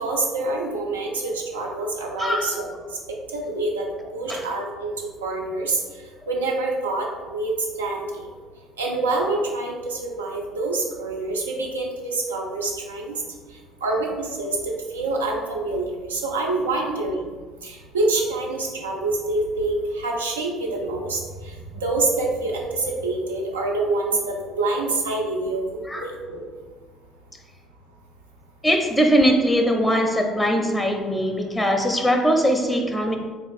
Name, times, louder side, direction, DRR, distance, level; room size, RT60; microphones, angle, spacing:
voice 1, 0.0-2.6 3.3-4.9 5.2-7.5 7.8-8.3 8.8-13.1 13.8-14.6 14.9-17.3 17.6-26.4, right 2 dB, 90° right, 0 dB, 0.5 m, -26 dB
voice 2, 2.2-2.6 4.3-4.4 25.9-26.1 28.6-33.2, equal, 10° left, 3 dB, 0.5 m, -21 dB
3.5 x 2.4 x 4.0 m, 1.5 s
hypercardioid pair, 55°, 0 cm